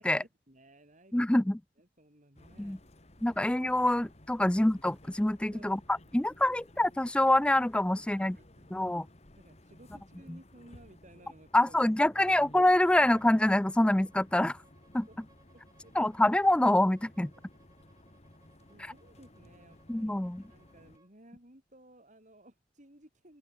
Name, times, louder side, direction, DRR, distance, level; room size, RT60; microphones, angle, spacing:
voice 1, 0.2-1.2 1.8-3.4 5.5-5.7 6.2-6.3 8.1-9.0 9.4-11.8 12.6-12.7 15.1-15.2 15.5-16.1 18.7-23.4, right 1 dB, 40° right, 5.2 m, -58 dB
voice 2, 1.1-1.6 2.6-2.8 3.2-5.8 6.1-8.4 8.7-9.0 11.5-14.6 14.9-15.1 16.0-17.3 19.9-20.4, left 1 dB, 5° left, 0.3 m, -26 dB
sound 1, 2.4-21.0, left 1 dB, 35° left, 2.5 m, -57 dB
Bowed string instrument, 13.1-21.1, right 2 dB, 20° right, 6.1 m, -67 dB
open air
head